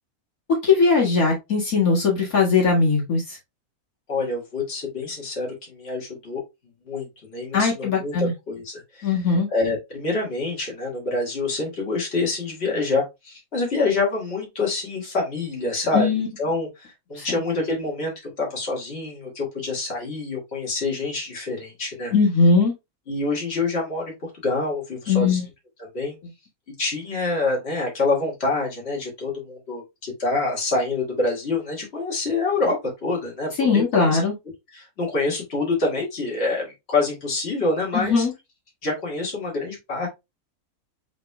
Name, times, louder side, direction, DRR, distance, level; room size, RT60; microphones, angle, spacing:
voice 1, 0.6-3.2 7.5-8.3 9.0-9.5 15.9-16.3 17.2-17.3 22.1-22.7 25.1-25.4 33.6-34.3 37.9-38.3, left 4 dB, 70° left, 2.2 m, -19 dB
voice 2, 4.1-6.4 6.9-16.1 16.4-22.1 23.1-25.4 25.9-26.2 26.8-32.8 33.0-34.2 34.7-38.3 38.8-40.1, left 3 dB, 45° left, 2.2 m, -26 dB
7.4 x 3.2 x 2.2 m
omnidirectional pair, 1.6 m